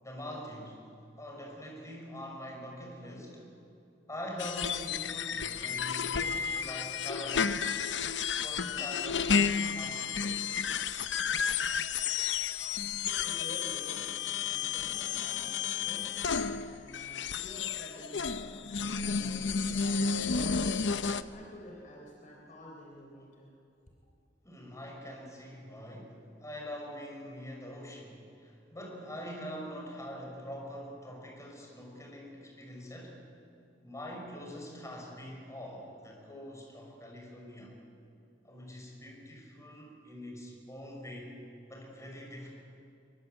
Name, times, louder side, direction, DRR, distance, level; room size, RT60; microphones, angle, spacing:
voice 1, 0.0-0.8 1.2-3.4 4.1-7.6 8.4-10.6 16.9-17.2 24.4-33.2 33.8-37.7 38.4-41.3 41.7-42.5, equal, 15° left, -1 dB, 6.0 m, -44 dB
sound 1, 4.4-21.2, left 6 dB, 90° left, 0.8 m, -32 dB
voice 2, 13.2-20.3 21.3-23.5, equal, 45° left, -1 dB, 3.7 m, -50 dB
23.5 x 23.0 x 8.0 m, 2.6 s
head